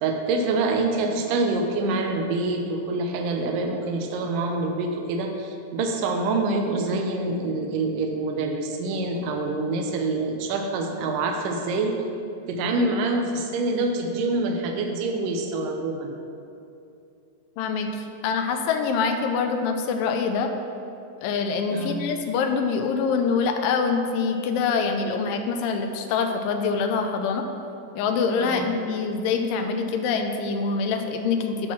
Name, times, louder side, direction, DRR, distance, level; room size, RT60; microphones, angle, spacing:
voice 1, 0.0-12.0 12.5-16.1 21.7-22.1 28.4-28.7, right 3 dB, 80° right, 3 dB, 2.3 m, -26 dB
voice 2, 17.6-20.5 21.2-27.5 28.0-31.7, left 5 dB, 85° left, 5 dB, 2.3 m, -25 dB
10.5 x 3.8 x 6.0 m, 2.6 s
omnidirectional pair, 3.9 m